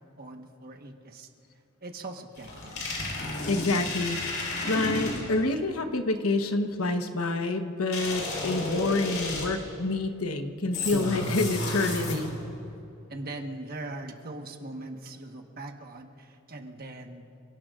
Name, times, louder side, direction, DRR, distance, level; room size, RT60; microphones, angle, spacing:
voice 1, 0.2-1.3 1.8-2.8 13.1-17.2, right 2 dB, 45° right, 4 dB, 1.3 m, -41 dB
sound 1, 2.4-5.5 7.9-9.7 10.7-12.5, left 2 dB, 65° left, 4.3 m, -32 dB
voice 2, 3.5-12.3, left 2 dB, 85° left, 6 dB, 1.1 m, -28 dB
28.0 x 18.0 x 2.5 m, 2.9 s
head